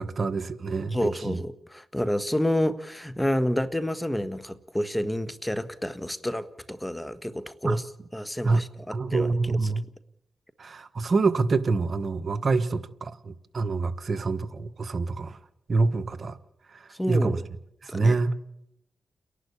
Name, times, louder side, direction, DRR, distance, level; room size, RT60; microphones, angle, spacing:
voice 1, 0.0-1.4 7.6-7.8 8.4-8.6 8.9-9.8 10.6-15.4 15.7-16.4 16.7-17.4 17.8-18.3, right 3 dB, 55° right, 11 dB, 1.3 m, -26 dB
voice 2, 0.9-7.8 8.1-9.3 17.0-17.4 17.9-18.1, left 1 dB, 10° left, 13 dB, 1.4 m, -29 dB
30.0 x 11.5 x 8.4 m, 0.80 s
cardioid pair, 60°, 0 cm